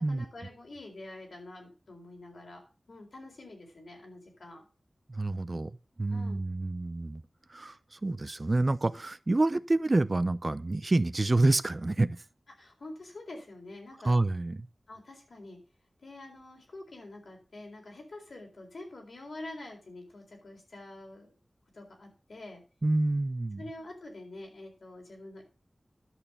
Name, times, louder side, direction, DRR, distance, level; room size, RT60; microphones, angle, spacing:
voice 1, 0.1-4.6 6.1-6.4 12.6-14.2 14.9-15.6 16.0-21.3 21.7-22.6 23.6-25.4, left 2 dB, 75° left, 4.2 m, -46 dB
voice 2, 5.1-5.7 6.0-7.2 7.5-12.2 14.0-14.7 22.8-23.6, right 2 dB, 40° right, 0.6 m, -28 dB
11.0 x 6.7 x 5.5 m
wide cardioid pair, 70°, 0 cm